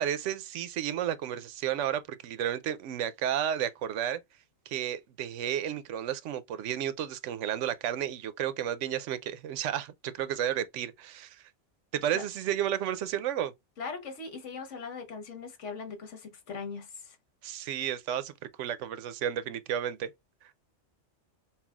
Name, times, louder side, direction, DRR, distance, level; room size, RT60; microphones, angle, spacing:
voice 1, 0.0-4.2 4.7-11.4 11.9-13.5 17.4-18.3 18.6-20.1, right 10 dB, 85° right, 0.9 m, -32 dB
voice 2, 13.8-17.2, left 5 dB, 90° left, 1.4 m, -40 dB
5.5 x 2.3 x 2.3 m
omnidirectional pair, 1.2 m